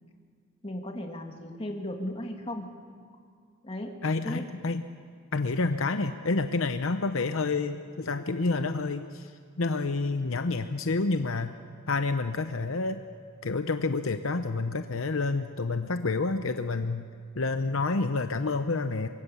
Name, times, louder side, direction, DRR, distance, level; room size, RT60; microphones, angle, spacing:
voice 1, 0.6-2.7 3.6-4.0 4.2-4.5, left 1 dB, 25° left, 2 dB, 2.2 m, -36 dB
voice 2, 4.0-4.8 5.3-9.3 9.6-11.5 11.9-13.0 13.4-17.1 17.3-19.1, left 3 dB, 65° left, 8 dB, 0.8 m, -28 dB
24.0 x 23.5 x 7.0 m, 2.1 s
head